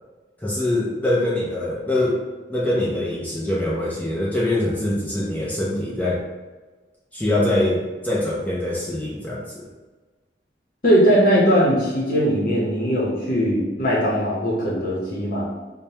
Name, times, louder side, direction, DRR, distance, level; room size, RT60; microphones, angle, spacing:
voice 1, 0.4-2.2 2.5-6.2 7.1-9.4, left 1 dB, 10° left, -6 dB, 0.5 m, -23 dB
voice 2, 10.8-15.5, equal, 50° left, -6 dB, 0.9 m, -20 dB
5.0 x 2.2 x 2.8 m, 1.3 s
head